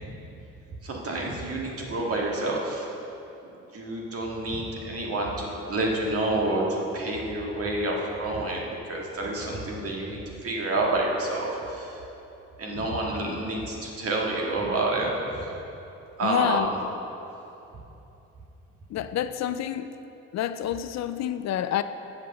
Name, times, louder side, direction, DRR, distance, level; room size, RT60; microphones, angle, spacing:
voice 1, 0.8-2.8 3.7-12.0 12.6-15.5 16.2-16.7, right 2 dB, 50° right, -2 dB, 1.8 m, -28 dB
voice 2, 16.2-16.7 18.9-19.9 20.3-21.8, left 11 dB, 65° left, 12 dB, 0.4 m, -28 dB
7.8 x 5.8 x 6.9 m, 3.0 s
cardioid pair, 90°, 30 cm